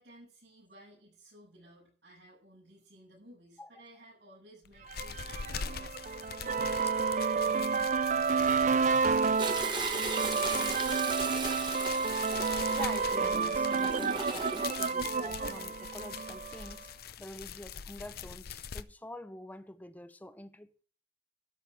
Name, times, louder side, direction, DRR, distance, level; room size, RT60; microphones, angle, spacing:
voice 1, 0.0-8.6, right 1 dB, 85° right, 7.1 m, -56 dB
sound 1, 4.6-18.8, left 8 dB, 60° left, 0.6 m, -43 dB
sound 2, 4.9-16.7, right 5 dB, 45° right, 0.4 m, -30 dB
Toilet flush, 9.4-14.9 16.4-16.9 17.4-17.5, right 3 dB, 25° right, 1.4 m, -38 dB
voice 2, 12.7-16.9 17.2-20.7, left 1 dB, 10° left, 0.7 m, -46 dB
12.5 x 5.3 x 7.5 m
head